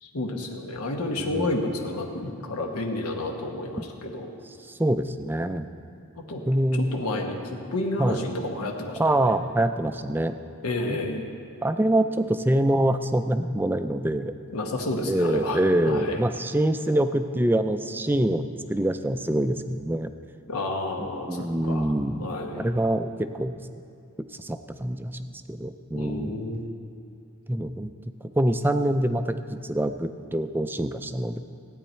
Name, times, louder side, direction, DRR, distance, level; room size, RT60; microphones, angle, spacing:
voice 1, 0.0-4.3 6.3-6.4 6.9-9.2 10.6-11.3 14.5-16.2 20.5-21.9 22.2-22.7 25.9-26.7, left 2 dB, 90° left, 2 dB, 1.1 m, -30 dB
voice 2, 4.6-5.7 6.5-6.9 8.0-8.2 9.0-10.4 10.9-11.0 11.6-14.3 15.0-20.1 21.0-23.6 24.2-26.4 27.5-27.9 28.2-31.4, right 1 dB, 10° right, 9 dB, 0.3 m, -25 dB
16.0 x 9.3 x 4.4 m, 2.6 s
head